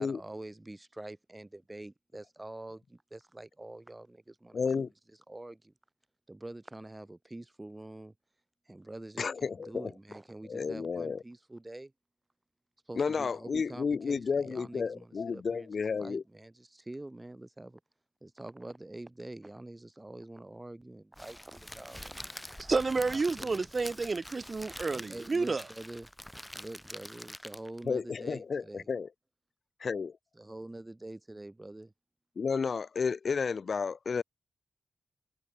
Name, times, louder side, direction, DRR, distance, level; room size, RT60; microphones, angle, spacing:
voice 1, 0.0-4.9 5.3-5.7 6.3-8.1 8.7-11.9 12.9-17.8 18.2-22.7 23.1-23.7 24.9-26.1 26.6-28.9 30.4-31.9, right 2 dB, 20° right, 2.2 m, -46 dB
voice 2, 4.5-4.9 9.2-9.9 10.5-11.2 13.0-16.2 27.9-29.1 29.8-30.1 32.4-34.2, left 5 dB, 60° left, 1.1 m, -32 dB
Crackle, 21.2-27.9, equal, 5° left, 0.9 m, -46 dB
voice 3, 22.6-25.6, right 4 dB, 45° right, 0.6 m, -30 dB
cardioid pair, 50°, 0 cm